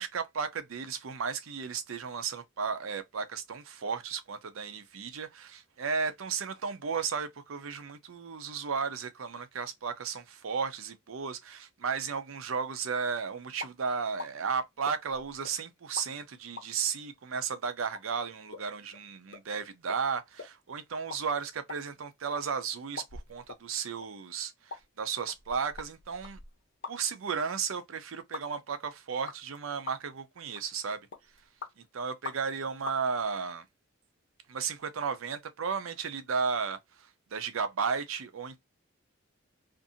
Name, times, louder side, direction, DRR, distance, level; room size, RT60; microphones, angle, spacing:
voice 1, 0.0-26.4 26.9-31.0 31.8-33.6 34.5-38.6, right 6 dB, 80° right, 0.5 m, -34 dB
sound 1, 13.6-13.8 14.2-14.3 14.8-15.5 16.0-16.1 16.6-16.7 17.3-17.4 17.9-18.0 18.5-18.7 18.9-19.0 19.3-19.4 19.9-20.0 20.4-20.5 20.9-21.2 21.5-22.4 23.0-23.6 24.0-24.1 24.7-24.8 25.3-27.1 27.4-27.5 28.3-28.4 29.3-29.6 29.9-30.2 30.5-30.8 31.1-31.7 32.2-32.6 32.8-33.0, left 3 dB, 55° left, 0.6 m, -43 dB
2.5 x 2.5 x 2.6 m
head